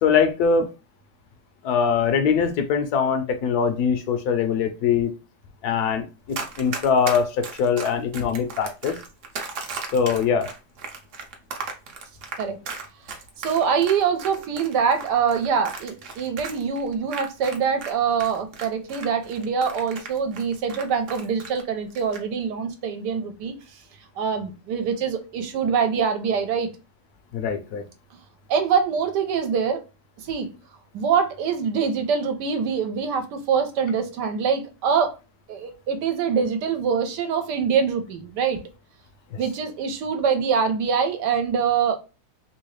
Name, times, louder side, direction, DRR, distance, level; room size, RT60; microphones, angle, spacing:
voice 1, 0.0-0.7 1.6-5.1 5.6-9.0 9.9-10.5 27.3-27.8 39.3-39.4, left 6 dB, 75° left, 1.0 m, -22 dB
Run, 6.3-17.9 18.2-21.6 21.9-22.2, right 4 dB, 60° right, 0.9 m, -35 dB
voice 2, 13.4-23.5 24.2-26.7 28.5-29.8 30.3-30.5 30.9-35.1 35.5-38.6 39.4-42.0, right 6 dB, 85° right, 1.3 m, -24 dB
3.1 x 2.8 x 3.1 m
omnidirectional pair, 1.8 m